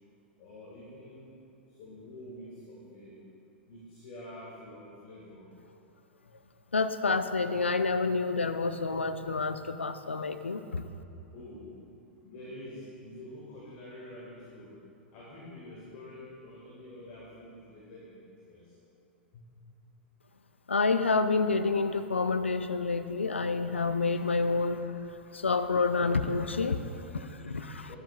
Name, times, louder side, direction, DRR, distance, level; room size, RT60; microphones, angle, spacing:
voice 1, 0.4-1.3 1.7-3.2 3.7-5.5 11.3-11.7 12.2-14.7 15.1-18.7 19.3-19.5 27.9-28.0, left 1 dB, 50° left, -6 dB, 2.1 m, -47 dB
voice 2, 6.7-10.8 20.7-24.8 25.3-27.9, left 4 dB, 85° left, 10 dB, 0.4 m, -28 dB
12.0 x 10.5 x 2.5 m, 2.8 s
figure-of-eight pair, 100°, 6 cm